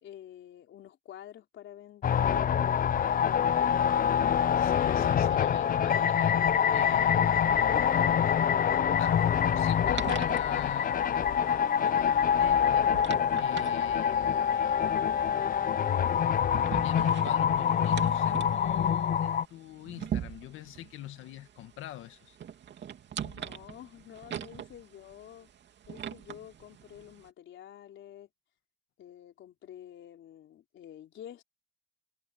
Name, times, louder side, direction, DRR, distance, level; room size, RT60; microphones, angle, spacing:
voice 1, 0.0-2.3 23.2-25.5 25.8-28.3 29.0-31.4, left 11 dB, 75° left, 4.1 m, -49 dB
sound 1, 2.0-19.4, left 8 dB, 45° left, 0.6 m, -25 dB
voice 2, 4.6-7.9 8.6-13.0 13.4-14.9 16.7-22.4, left 14 dB, 90° left, 1.8 m, -43 dB
sound 2, 9.0-27.3, right 9 dB, 65° right, 2.8 m, -43 dB
cardioid pair, 90°, 20 cm